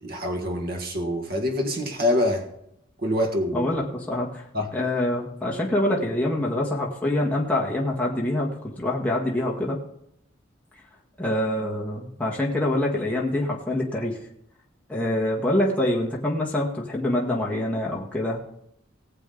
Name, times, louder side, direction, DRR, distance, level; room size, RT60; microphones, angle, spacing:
voice 1, 0.0-2.5 3.0-3.7 4.5-4.7, left 1 dB, 50° right, 1.8 m, -25 dB
voice 2, 3.5-4.5 4.7-8.5 8.8-9.8 11.2-14.2 14.9-18.4, left 1 dB, 5° left, 1.8 m, -25 dB
19.0 x 7.6 x 4.0 m
head